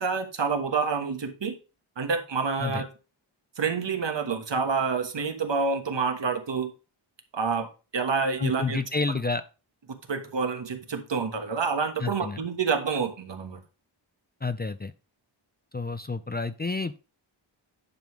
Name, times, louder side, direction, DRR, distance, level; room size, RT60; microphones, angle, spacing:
voice 1, 0.0-1.5 2.0-2.9 3.6-6.7 7.3-7.7 7.9-8.8 9.1-9.2 9.9-13.6, right 5 dB, 65° right, 6 dB, 1.5 m, -28 dB
voice 2, 8.4-9.4 12.0-12.4 14.4-14.9 15.7-17.0, left 4 dB, 20° left, 12 dB, 0.4 m, -29 dB
10.5 x 3.6 x 6.1 m, 0.32 s
wide cardioid pair, 110°, 46 cm